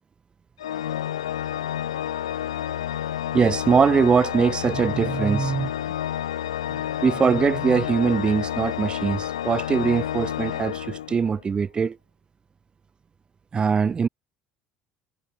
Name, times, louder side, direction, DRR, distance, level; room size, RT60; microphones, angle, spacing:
Organ, 0.6-11.5, left 11 dB, 90° left, 1.6 m, -30 dB
voice 1, 3.3-5.7 6.7-12.0 13.5-14.1, right 6 dB, 30° right, 1.5 m, -22 dB
hypercardioid pair, 65°, 3 cm